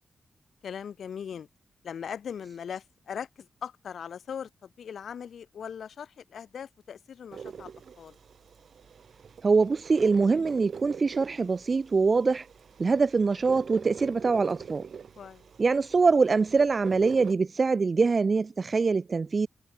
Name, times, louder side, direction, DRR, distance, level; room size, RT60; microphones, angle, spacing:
voice 1, 0.6-1.5 1.8-7.7 8.0-8.2 15.2-15.4, left 7 dB, 85° left, 6.2 m, -39 dB
sound 1, 7.3-17.3, right 6 dB, 75° right, 3.5 m, -44 dB
voice 2, 9.4-12.5 12.8-14.9 15.6-19.5, right 4 dB, 45° right, 1.4 m, -24 dB
cardioid pair, 75°, 0 cm